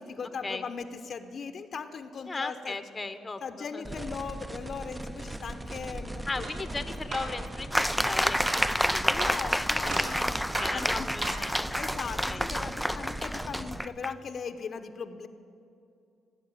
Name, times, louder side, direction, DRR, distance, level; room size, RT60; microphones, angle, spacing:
voice 1, 0.0-2.8 3.4-6.5 9.1-11.1 11.7-15.3, left 5 dB, 55° left, 8 dB, 0.8 m, -39 dB
voice 2, 2.3-3.9 6.3-9.3 9.6-10.2 10.6-11.8 12.3-12.4, left 3 dB, 25° left, 10 dB, 0.9 m, -37 dB
sound 1, 3.8-13.8, right 1 dB, 15° right, 0.8 m, -39 dB
sound 2, 6.4-6.6 7.1-7.3 7.8-8.0 8.5-8.7 9.2-9.4 9.9-10.2 10.6-10.8 11.2-11.5, right 2 dB, 70° right, 3.9 m, -36 dB
sound 3, 7.7-14.1, equal, ahead, 0.4 m, -29 dB
17.0 x 8.2 x 10.0 m, 2.5 s
cardioid pair, 90°, 0 cm